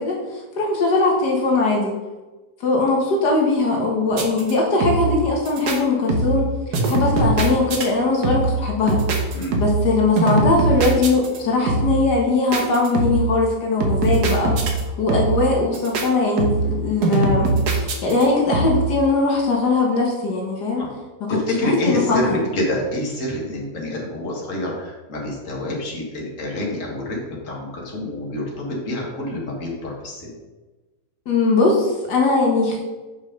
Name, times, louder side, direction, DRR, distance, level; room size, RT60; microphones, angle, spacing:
voice 1, 0.0-2.0 2.6-20.8 21.2-22.4 31.3-32.8, left 3 dB, 85° left, -1 dB, 2.0 m, -20 dB
sound 1, 4.1-4.5 4.8-5.2 5.5-5.8 6.1-6.5 6.7-7.9 8.2-8.6 8.9-9.9 10.2-11.4 11.7-12.0 12.5-13.3 13.8-14.8 15.1-15.5 15.7-16.1 16.4-16.8 17.0-18.2 18.5-18.9, right 2 dB, 75° right, 1.7 m, -21 dB
voice 2, 21.3-27.2 27.4-30.4, left 1 dB, 50° left, -2 dB, 2.2 m, -26 dB
7.3 x 5.3 x 5.1 m, 1.2 s
omnidirectional pair, 1.7 m